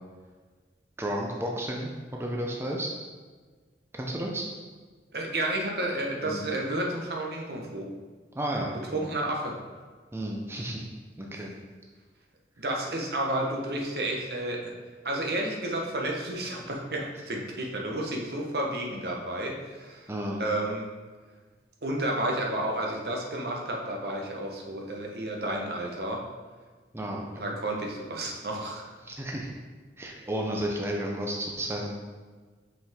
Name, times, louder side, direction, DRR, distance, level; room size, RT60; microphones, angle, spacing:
voice 1, 1.0-2.9 3.9-4.4 6.2-6.4 8.3-9.0 10.1-10.9 11.2-11.5 20.1-20.4 26.9-27.6 29.0-29.5 30.0-31.9, right 1 dB, 15° right, -1 dB, 0.5 m, -32 dB
voice 2, 5.1-7.9 8.9-9.6 12.6-14.7 15.0-20.1 20.4-20.9 21.8-26.2 27.4-28.9, right 1 dB, 60° right, 0 dB, 1.0 m, -31 dB
5.7 x 5.3 x 3.6 m, 1.4 s
head